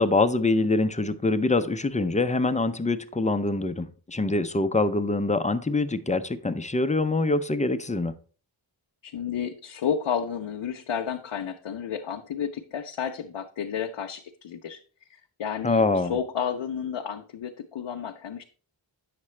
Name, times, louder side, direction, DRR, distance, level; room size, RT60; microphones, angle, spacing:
voice 1, 0.0-8.1 15.6-16.1, left 2 dB, 15° left, 0.5 m, -24 dB
voice 2, 9.0-14.8 15.1-18.4, left 7 dB, 85° left, 0.7 m, -31 dB
8.4 x 5.9 x 3.2 m
wide cardioid pair, 70°, 47 cm